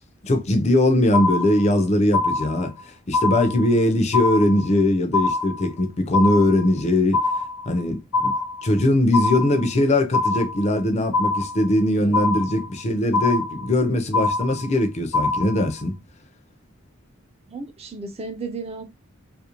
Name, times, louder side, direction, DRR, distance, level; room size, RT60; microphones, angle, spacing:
voice 1, 0.2-7.2 7.7-8.4 8.6-16.0, left 1 dB, 30° left, 0.5 m, -21 dB
sound 1, 1.1-1.8 2.1-2.8 3.1-3.8 4.1-4.8 5.1-5.8 6.1-6.8 7.1-7.8 8.1-8.8 9.1-9.8 10.1-10.8 11.1-11.8 12.1-12.8 13.1-13.8 14.1-14.8 15.1-15.8, left 3 dB, 85° left, 0.7 m, -24 dB
voice 2, 17.5-18.8, right 3 dB, 30° right, 0.4 m, -34 dB
2.5 x 2.0 x 2.8 m
head